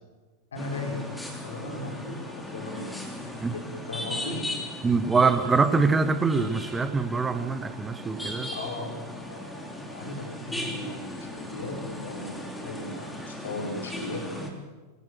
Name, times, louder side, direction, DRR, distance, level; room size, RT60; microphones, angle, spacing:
voice 1, 0.5-4.6 8.5-14.3, left 2 dB, 65° left, 2 dB, 4.7 m, -37 dB
sound 1, 0.6-14.5, left 1 dB, 5° left, 3.4 m, -38 dB
voice 2, 4.8-8.5, right 4 dB, 15° right, 12 dB, 1.3 m, -24 dB
23.0 x 18.0 x 6.2 m, 1.3 s
figure-of-eight pair, 90°, 0 cm